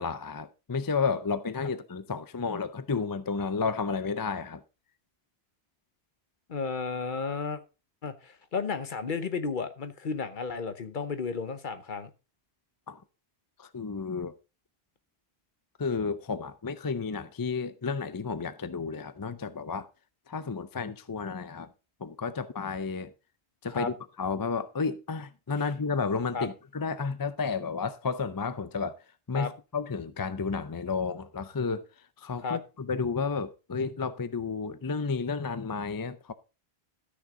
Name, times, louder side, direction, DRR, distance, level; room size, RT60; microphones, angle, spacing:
voice 1, 0.0-4.6 12.9-13.0 13.6-14.3 15.8-19.9 20.3-21.7 22.0-23.1 23.6-29.0 29.3-31.9 32.2-36.3, left 5 dB, 30° left, 0.4 m, -32 dB
voice 2, 6.5-7.6 8.0-12.1 23.7-23.9 26.3-26.5 29.3-29.5 32.4-32.6, left 5 dB, 50° left, 1.0 m, -33 dB
13.5 x 6.3 x 3.8 m
omnidirectional pair, 1.1 m